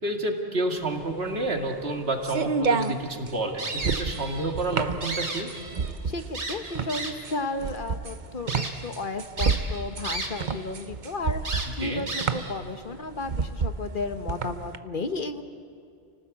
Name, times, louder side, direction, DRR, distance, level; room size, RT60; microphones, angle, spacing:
voice 1, 0.0-5.5 11.8-12.1, right 2 dB, 65° right, 3 dB, 2.5 m, -29 dB
sound 1, 0.9-14.8, right 5 dB, 45° right, 0.9 m, -30 dB
sound 2, 3.6-4.5 4.9-5.9 6.3-7.3 7.9-8.0 8.5-8.7 9.4-10.5 10.8-10.9 11.4-12.5, right 2 dB, 90° right, 2.6 m, -33 dB
voice 2, 6.0-15.4, left 3 dB, 50° left, 8 dB, 1.2 m, -33 dB
29.5 x 18.5 x 8.3 m, 2.5 s
omnidirectional pair, 1.1 m